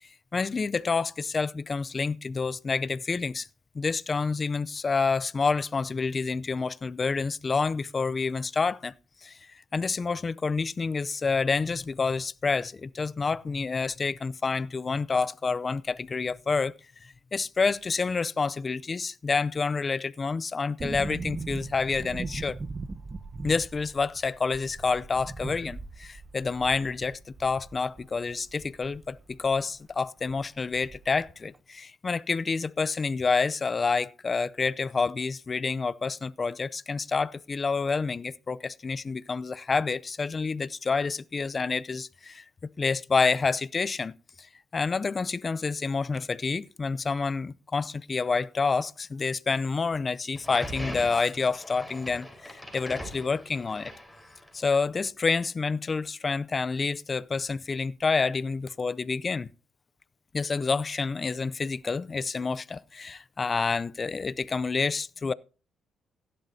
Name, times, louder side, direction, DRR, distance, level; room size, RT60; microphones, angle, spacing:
voice 1, 0.3-3.5 3.7-8.9 9.2-9.4 9.7-16.7 17.0-22.6 23.4-44.2 44.7-53.9 54.5-59.5 60.3-65.3, left 4 dB, 35° left, 0.5 m, -28 dB
sound 1, 20.8-29.6 29.9-30.0 30.3-31.3 31.5-31.6, right 3 dB, 30° right, 0.9 m, -39 dB
sound 2, 50.3-54.7, equal, ahead, 4.3 m, -41 dB
16.0 x 11.0 x 2.7 m
cardioid pair, 90°, 0 cm